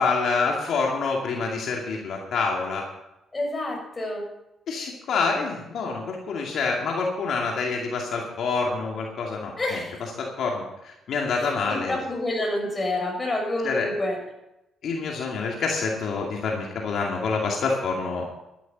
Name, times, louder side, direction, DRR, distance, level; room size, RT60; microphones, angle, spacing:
voice 1, 0.0-2.8 4.7-9.5 10.2-12.0 13.6-13.9 14.8-18.2, left 4 dB, 70° left, -1 dB, 2.4 m, -27 dB
voice 2, 3.3-4.2 9.6-10.1 11.4-14.2, left 1 dB, 25° left, 1 dB, 6.5 m, -28 dB
12.0 x 11.5 x 5.5 m, 0.91 s
cardioid pair, 90°, 0 cm